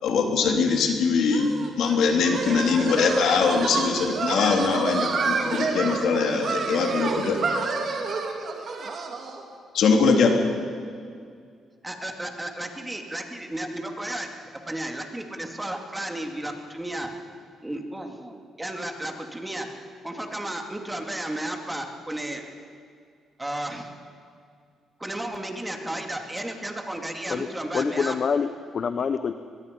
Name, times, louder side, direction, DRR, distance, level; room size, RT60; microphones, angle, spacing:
voice 1, 0.0-1.5 1.8-7.4 9.7-10.3, left 5 dB, 75° left, 3 dB, 3.0 m, -22 dB
sound 1, 1.3-9.4, right 4 dB, 55° right, 3.1 m, -29 dB
voice 2, 11.8-14.3 14.5-17.1 17.6-19.7 20.0-22.4 23.4-23.9 25.0-28.2, right 1 dB, 10° right, 3 dB, 2.6 m, -33 dB
voice 3, 27.7-29.3, left 6 dB, 50° left, 10 dB, 0.8 m, -26 dB
23.0 x 21.5 x 5.4 m, 2.2 s
cardioid pair, 90°, 0 cm